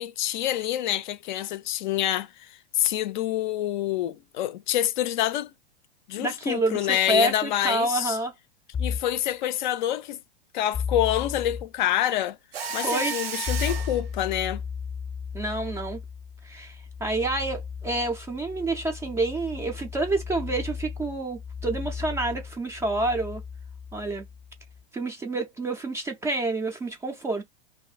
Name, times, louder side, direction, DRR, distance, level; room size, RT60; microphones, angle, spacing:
voice 1, 0.0-5.5 6.1-8.2 8.8-10.2 10.5-12.4 12.7-14.6, left 12 dB, 50° left, 0.5 m, -27 dB
voice 2, 6.2-8.3 12.8-13.1 15.3-16.0 16.4-16.8 17.0-23.4 23.9-24.2 24.9-27.4, right 2 dB, 10° right, 0.3 m, -28 dB
sound 1, 8.7-9.2 10.7-11.7 13.5-24.8, left 6 dB, 15° left, 0.7 m, -35 dB
Mechanisms, 12.5-14.0, right 5 dB, 80° right, 0.8 m, -32 dB
2.6 x 2.5 x 2.3 m
hypercardioid pair, 110°, 31 cm